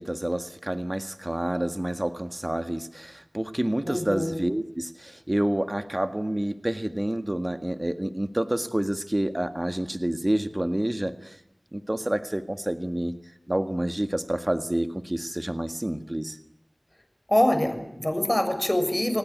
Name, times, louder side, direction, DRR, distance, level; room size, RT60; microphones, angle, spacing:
voice 1, 0.0-11.4 11.7-13.2 13.5-16.4, right 1 dB, 30° right, 9 dB, 1.7 m, -28 dB
voice 2, 3.9-4.3 17.3-19.2, left 1 dB, 25° left, 7 dB, 6.7 m, -24 dB
28.5 x 20.0 x 9.5 m, 0.82 s
wide cardioid pair, 40°, 0 cm